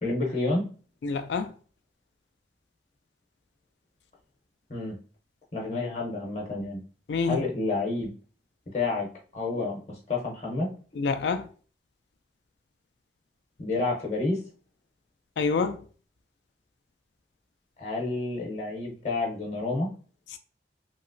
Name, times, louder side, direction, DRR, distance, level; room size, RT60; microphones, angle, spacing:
voice 1, 0.0-0.7 4.7-5.0 5.5-6.8 7.2-8.1 8.7-10.7 13.6-14.5 17.8-19.9, left 3 dB, 40° left, 0.8 m, -29 dB
voice 2, 1.0-1.5 7.1-7.4 11.0-11.5 15.4-15.8, left 4 dB, 80° left, 0.3 m, -27 dB
2.9 x 2.9 x 2.5 m
head